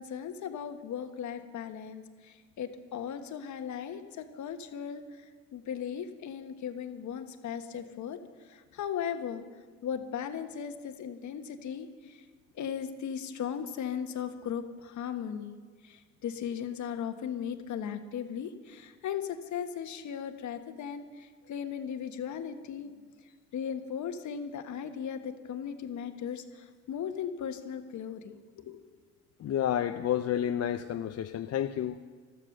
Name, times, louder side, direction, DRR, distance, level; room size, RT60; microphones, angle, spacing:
voice 1, 0.0-9.4 9.8-12.2 12.5-15.6 15.8-23.1 23.5-28.8, left 8 dB, 70° left, 8 dB, 1.4 m, -37 dB
voice 2, 29.4-32.0, left 10 dB, 55° left, 7 dB, 0.7 m, -30 dB
14.0 x 13.5 x 6.6 m, 1.5 s
cardioid pair, 90°, 30 cm